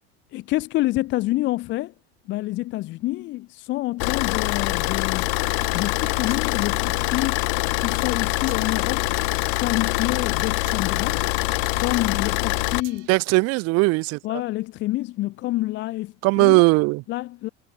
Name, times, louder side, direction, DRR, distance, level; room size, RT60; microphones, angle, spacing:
voice 1, 0.3-1.9 2.3-5.3 5.7-7.4 7.8-9.1 9.6-11.2 11.8-13.1 14.2-16.6 17.1-17.5, left 17 dB, 35° left, 0.4 m, -27 dB
Car / Idling, 4.0-12.8, left 34 dB, 70° left, 0.9 m, -24 dB
sound 1, 4.7-13.3, right 23 dB, 80° right, 4.7 m, -46 dB
voice 2, 13.1-14.2 16.2-17.0, right 25 dB, 45° right, 0.5 m, -18 dB
supercardioid pair, 140°, 35 cm